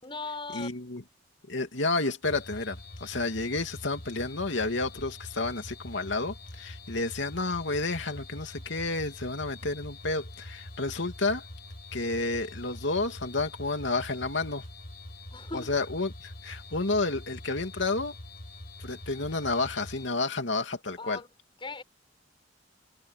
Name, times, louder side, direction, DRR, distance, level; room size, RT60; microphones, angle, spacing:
voice 1, 0.0-0.9 15.3-15.7 21.0-21.3 21.6-21.8, left 3 dB, 30° left, 6.0 m, -39 dB
voice 2, 0.5-1.0 1.5-11.4 11.9-14.7 15.5-18.1 18.8-21.2, left 3 dB, 85° left, 2.6 m, -30 dB
sound 1, 2.2-20.1, left 1 dB, 60° left, 5.0 m, -45 dB
head